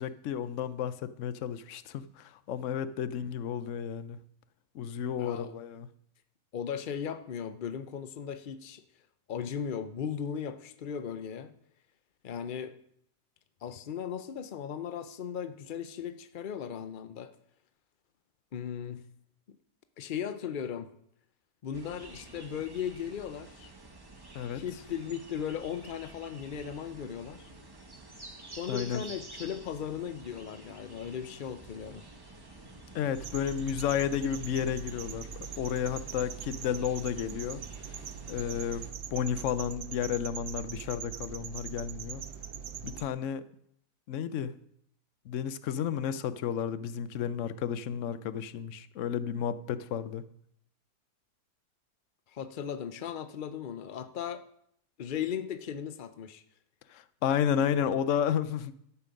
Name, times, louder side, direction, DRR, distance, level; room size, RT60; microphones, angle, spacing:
voice 1, 0.0-4.2 4.7-5.9 24.3-24.6 28.7-29.0 32.9-35.3 35.6-37.6 37.9-38.0 38.3-42.2 42.8-43.4 44.1-44.6 45.3-50.3 56.9-58.7, left 8 dB, 60° left, 14 dB, 0.9 m, -32 dB
voice 2, 5.2-5.5 6.5-8.8 9.3-11.5 12.2-12.8 13.6-17.3 18.5-19.0 19.5-19.6 20.0-20.9 21.6-23.7 24.5-27.5 28.6-32.0 52.3-54.4 55.0-56.4, left 8 dB, 80° left, 10 dB, 0.4 m, -37 dB
sound 1, 21.7-38.9, right 2 dB, 15° right, 1.1 m, -50 dB
sound 2, 33.2-43.1, right 8 dB, 80° right, 1.3 m, -42 dB
12.5 x 8.4 x 5.2 m, 0.71 s
omnidirectional pair, 1.7 m